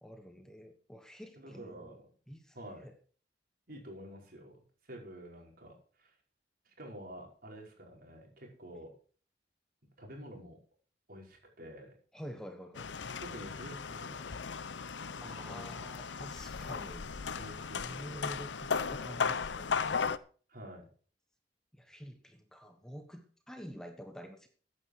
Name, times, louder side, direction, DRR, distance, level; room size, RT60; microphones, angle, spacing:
voice 1, 0.0-2.0 2.3-2.9 12.1-12.9 15.2-17.1 17.5-20.1 21.7-24.5, equal, 5° left, 5 dB, 1.3 m, -48 dB
voice 2, 1.4-2.1 2.5-2.9 3.7-4.5 4.8-6.1 6.6-8.9 10.0-10.6 11.1-11.9 13.2-14.3 15.2-15.7 17.4-18.3 20.5-20.9, equal, 55° right, 0 dB, 5.1 m, -49 dB
sound 1, 12.7-20.2, left 5 dB, 90° left, 0.7 m, -36 dB
15.0 x 9.6 x 4.7 m, 0.41 s
head